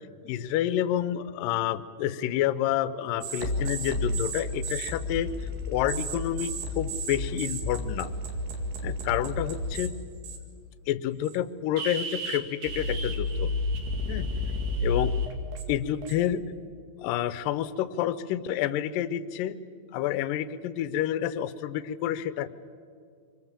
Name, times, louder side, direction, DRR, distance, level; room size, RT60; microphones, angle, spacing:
voice 1, 0.2-5.3 5.7-8.1 8.8-9.9 10.9-13.5 14.1-14.3 14.8-15.1 15.7-16.4 17.0-19.6 19.9-22.5, left 11 dB, 75° left, 13 dB, 2.1 m, -29 dB
sound 1, 3.2-9.9 10.2-10.6 11.2-11.4 11.8-16.3, left 1 dB, 70° right, 4.0 m, -31 dB
26.5 x 23.5 x 7.4 m, 2.3 s
omnidirectional pair, 4.8 m